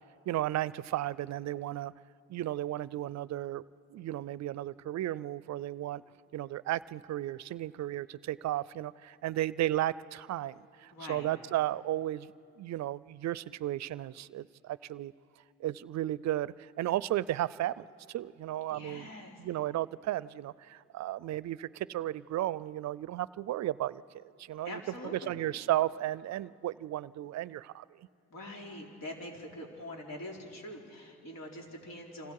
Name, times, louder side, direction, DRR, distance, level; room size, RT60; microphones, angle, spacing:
voice 1, 0.3-1.9 2.3-3.6 3.9-6.0 6.3-15.1 15.6-19.1 19.4-24.0 24.4-24.8 25.1-28.1, right 14 dB, 65° right, 20 dB, 0.5 m, -34 dB
voice 2, 10.9-11.3 18.7-19.4 24.6-25.4 28.3-32.3, left 1 dB, 60° left, 0 dB, 4.0 m, -44 dB
27.5 x 26.5 x 4.8 m, 2.7 s
cardioid pair, 90°, 30 cm